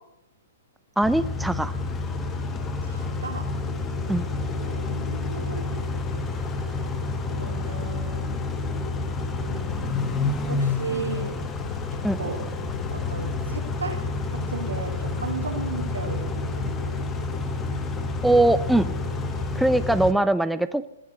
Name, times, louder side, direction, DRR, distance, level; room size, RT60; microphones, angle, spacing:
Car / Idling / Accelerating revving vroom, 1.0-20.1, left 3 dB, 20° left, 1.5 m, -29 dB
voice 1, 1.0-1.7 4.1-4.3 12.0-12.2 18.2-18.9 19.5-20.9, right 1 dB, 5° right, 12 dB, 0.5 m, -21 dB
voice 2, 2.8-3.4 4.6-5.8 7.3-8.3 9.4-11.3 12.2-12.4 12.9-14.0 14.5-16.7, right 4 dB, 85° right, 3 dB, 2.9 m, -35 dB
19.5 x 7.5 x 6.6 m, 0.85 s
hypercardioid pair, 115°, 0 cm